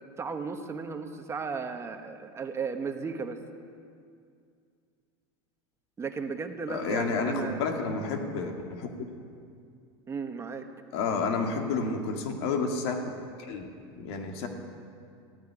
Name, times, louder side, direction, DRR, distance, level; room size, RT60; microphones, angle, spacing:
voice 1, 0.2-3.4 6.0-7.6 10.1-10.6, right 5 dB, 20° right, 6 dB, 1.1 m, -35 dB
voice 2, 6.7-8.9 10.9-13.0 13.4-13.7 13.9-14.5, left 4 dB, 70° left, 3 dB, 2.2 m, -30 dB
15.5 x 9.4 x 9.6 m, 2.3 s
supercardioid pair, 130°, 14 cm